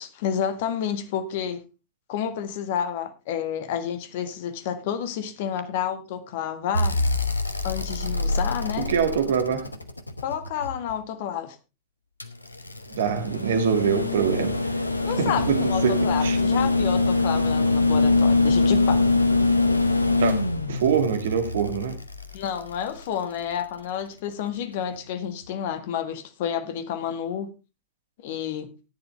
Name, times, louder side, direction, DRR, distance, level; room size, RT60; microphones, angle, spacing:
voice 1, 0.0-1.6 2.1-7.0 7.6-8.9 10.2-11.6 15.1-19.0 22.3-27.5 28.2-28.7, left 9 dB, 50° left, 1.7 m, -30 dB
sound 1, 6.7-10.9 12.2-23.4 24.9-25.0, left 3 dB, 85° left, 1.1 m, -24 dB
voice 2, 8.8-9.7 12.9-14.7 15.1-16.4 20.2-20.4 20.7-22.0, right 7 dB, 60° right, 1.8 m, -24 dB
14.5 x 10.5 x 3.2 m
figure-of-eight pair, 90°, 0 cm